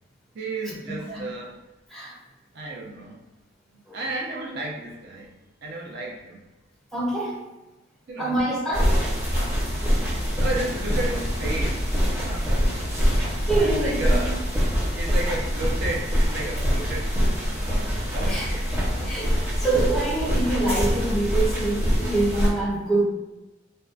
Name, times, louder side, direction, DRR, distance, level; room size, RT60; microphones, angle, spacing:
voice 1, 0.3-1.6 2.5-3.2 3.7-5.3 5.6-6.4 8.1-8.4 10.4-11.9 12.2-12.5 13.6-14.3 15.0-17.1 17.5-18.8, right 2 dB, 60° right, -1 dB, 0.5 m, -33 dB
voice 2, 6.9-7.4 8.2-9.2 9.8-10.1 12.9-13.1 13.5-14.3 18.3-18.5 19.1-23.0, right 2 dB, ahead, -5 dB, 0.4 m, -26 dB
sound 1, 8.7-22.5, equal, 15° right, 0.9 m, -24 dB
2.6 x 2.1 x 2.3 m, 1.1 s
head